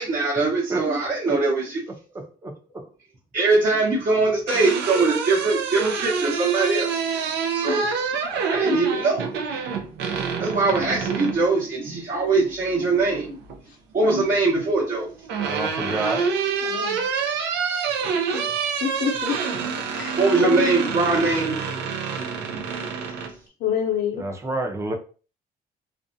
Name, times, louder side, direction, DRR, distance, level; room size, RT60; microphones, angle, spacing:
voice 1, 0.0-1.8 3.3-7.0 7.5-7.9 8.5-9.2 10.4-13.4 13.9-15.1 20.2-21.6 22.5-22.7, right 3 dB, 50° right, 0.9 m, -22 dB
voice 2, 2.4-2.9 15.4-16.3 24.2-24.9, right 2 dB, 15° right, 0.5 m, -28 dB
sound 1, 4.2-11.4 12.9-13.6 14.8-23.3, right 5 dB, 90° right, 0.5 m, -27 dB
voice 3, 8.2-8.8 16.6-17.1 18.3-18.4 18.8-19.4 19.9-20.7 23.6-24.2, left 7 dB, 80° left, 0.7 m, -28 dB
2.5 x 2.1 x 2.6 m
cardioid pair, 115°, 17 cm